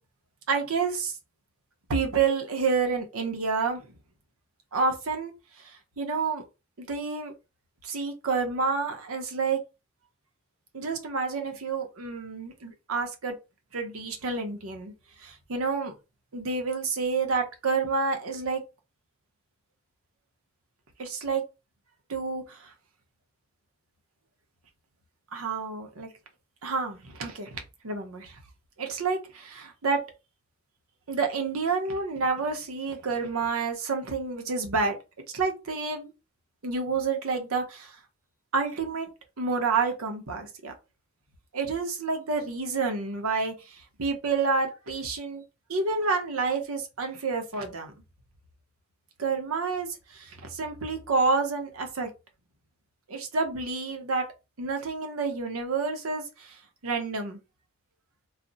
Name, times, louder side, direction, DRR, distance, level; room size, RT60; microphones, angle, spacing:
voice 1, 0.5-1.2 1.9-3.9 4.7-6.4 6.8-7.3 7.8-9.6 10.7-13.3 13.7-14.9 15.2-15.9 16.3-18.6 21.0-21.4 22.1-22.7 25.3-26.1 26.6-28.4 28.8-30.0 31.1-35.0 35.3-36.1 36.6-38.0 38.5-39.1 39.4-40.7 41.5-45.4 45.7-47.9 49.2-52.1 53.1-54.3 54.6-57.4, right 4 dB, 80° right, 0.8 m, -29 dB
2.4 x 2.0 x 3.8 m
head